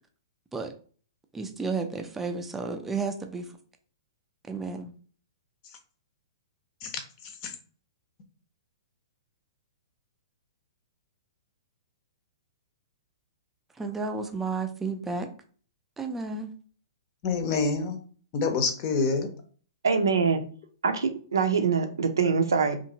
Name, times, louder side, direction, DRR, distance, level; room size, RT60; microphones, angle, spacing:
voice 1, 1.3-3.5 4.5-4.9 13.8-15.3 16.0-16.5, right 4 dB, 10° right, 6 dB, 0.4 m, -32 dB
voice 2, 17.2-18.0 18.3-19.3, left 4 dB, 40° left, 5 dB, 0.7 m, -27 dB
voice 3, 19.8-20.4 20.8-22.8, right 5 dB, 80° right, 7 dB, 0.5 m, -24 dB
2.8 x 2.5 x 2.8 m, 0.43 s
hypercardioid pair, 120°, 2 cm